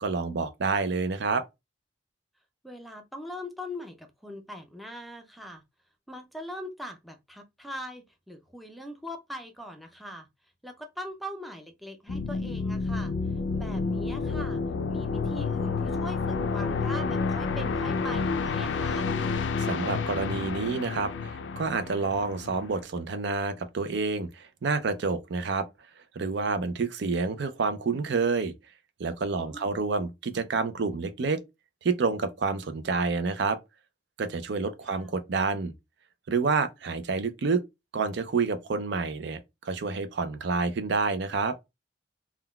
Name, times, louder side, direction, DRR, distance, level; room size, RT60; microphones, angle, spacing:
voice 1, 0.0-1.4 19.6-25.7 26.2-28.5 29.0-31.4 31.8-33.6 34.2-35.7 36.3-37.6 37.9-41.6, right 4 dB, 65° right, 0.4 m, -28 dB
voice 2, 2.6-5.6 6.1-10.3 10.6-13.1 13.5-14.6 14.9-19.1 29.4-29.8 34.9-35.2, equal, ahead, 0.4 m, -41 dB
sound 1, 12.1-22.8, left 4 dB, 75° left, 0.4 m, -30 dB
3.6 x 2.2 x 2.2 m
head